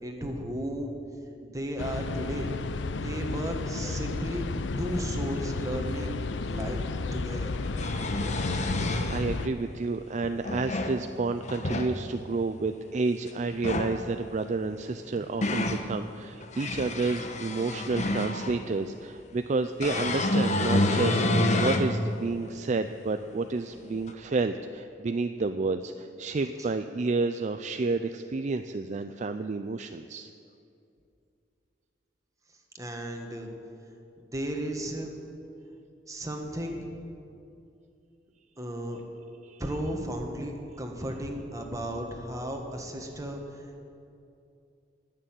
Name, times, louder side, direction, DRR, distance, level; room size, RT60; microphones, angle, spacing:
voice 1, 0.0-1.0 1.4-2.6 3.0-4.4 4.8-6.1 6.5-6.8 7.1-7.5 32.7-33.5 34.3-35.1 36.1-36.9 38.6-39.0 39.6-43.8, right 1 dB, 20° right, 2 dB, 1.7 m, -34 dB
sound 1, 1.8-9.5, left 3 dB, 85° left, 0.6 m, -32 dB
sound 2, 6.6-6.7 7.5-9.2 10.2-11.0 11.4-11.9 13.5-14.0 14.9-15.8 16.4-18.6 19.8-21.9 22.4-22.5 24.1-24.2, left 1 dB, 40° left, 1.1 m, -28 dB
voice 2, 9.1-30.3 39.4-39.6, right 3 dB, 40° right, 8 dB, 0.4 m, -30 dB
20.0 x 6.8 x 9.1 m, 2.6 s
head